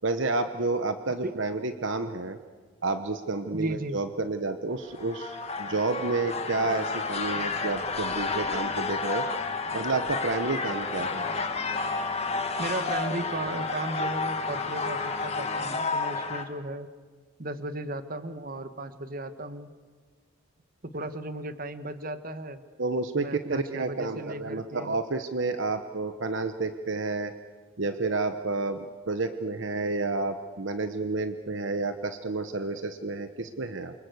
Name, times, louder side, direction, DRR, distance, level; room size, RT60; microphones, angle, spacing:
voice 1, 0.0-2.4 2.8-9.3 9.7-11.2 22.8-27.3 27.8-33.9, right 3 dB, 60° right, 9 dB, 1.1 m, -30 dB
voice 2, 3.5-4.0 12.6-16.9 17.4-19.7 20.9-22.6 23.2-25.0, right 1 dB, 40° right, 11 dB, 1.4 m, -35 dB
sound 1, 4.8-16.4, left 4 dB, 30° left, 2.0 m, -31 dB
28.5 x 24.5 x 8.1 m, 1.5 s
head